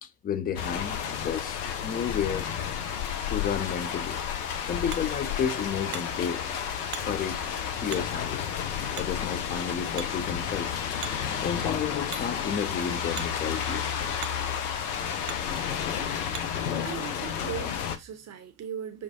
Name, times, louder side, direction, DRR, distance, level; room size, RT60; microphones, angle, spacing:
voice 1, 0.0-1.0 1.2-2.5 3.3-4.2 4.6-6.5 6.8-7.4 7.8-8.4 9.0-10.7 11.4-13.9, left 8 dB, 20° left, 0.4 m, -32 dB
sound 1, 0.6-18.0, left 8 dB, 70° left, 0.7 m, -31 dB
Hammer, 4.0-16.7, right 10 dB, 75° right, 0.6 m, -46 dB
voice 2, 16.8-19.0, right 9 dB, 35° right, 0.7 m, -38 dB
6.1 x 2.3 x 2.6 m
figure-of-eight pair, 50°, 47 cm